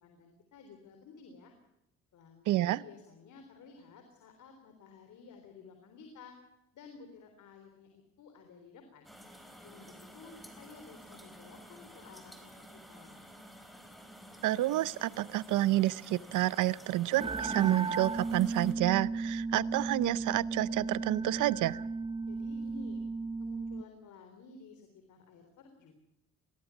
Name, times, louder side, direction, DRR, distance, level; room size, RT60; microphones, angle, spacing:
voice 1, 0.0-1.5 2.1-6.4 6.7-9.1 9.6-13.2 22.2-23.0 23.4-25.9, left 4 dB, 75° left, 6 dB, 3.8 m, -53 dB
voice 2, 2.5-2.8 14.4-21.8, right 15 dB, 85° right, 19 dB, 0.7 m, -29 dB
sound 1, 9.0-18.7, equal, ahead, 4.4 m, -52 dB
sound 2, 17.2-23.8, right 3 dB, 15° right, 0.8 m, -35 dB
22.0 x 18.0 x 7.1 m, 0.91 s
cardioid pair, 90°, 30 cm